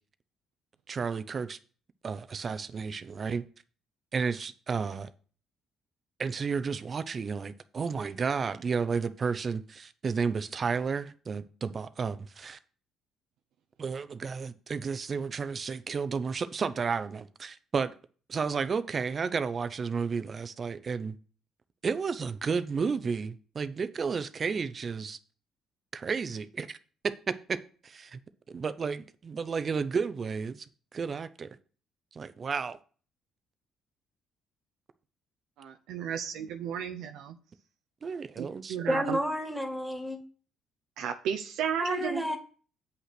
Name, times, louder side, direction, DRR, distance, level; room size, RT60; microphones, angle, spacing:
voice 1, 0.9-1.6 2.0-3.4 4.1-5.1 6.2-12.6 13.8-17.9 18.3-21.2 21.8-25.2 25.9-26.8 27.0-27.6 27.8-28.2 28.5-30.7 30.9-31.5 32.1-32.8 38.0-38.8, right 5 dB, 40° right, 13 dB, 0.7 m, -32 dB
voice 2, 35.6-37.4 38.4-39.2 41.0-42.4, right 8 dB, 85° right, 4 dB, 0.8 m, -34 dB
voice 3, 38.9-40.2 41.8-42.4, equal, ahead, 5 dB, 2.1 m, -30 dB
8.3 x 5.6 x 6.0 m, 0.40 s
cardioid pair, 95°, 0 cm